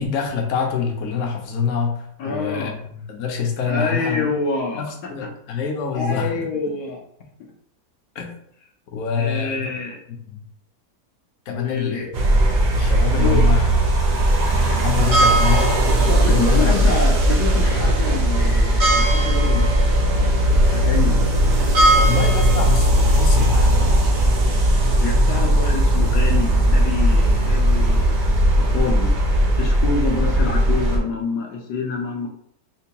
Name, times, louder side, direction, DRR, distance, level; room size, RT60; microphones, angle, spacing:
voice 1, 0.0-4.3 4.7-6.3 8.1-8.4 8.9-9.7 10.1-10.4 11.5-12.1 12.7-13.7 14.1-16.7 21.9-23.8, left 6 dB, 60° left, 2 dB, 0.9 m, -26 dB
voice 2, 2.2-2.8 3.7-5.6 5.9-7.0 9.2-10.0 11.5-12.2 13.2-13.5 16.1-19.8 20.7-21.2 25.0-28.1 28.6-29.1 29.6-32.3, left 4 dB, 75° left, 0 dB, 1.2 m, -27 dB
sound 1, 12.1-31.0, right 1 dB, 55° right, 0.7 m, -17 dB
4.4 x 2.2 x 2.8 m, 0.69 s
omnidirectional pair, 1.8 m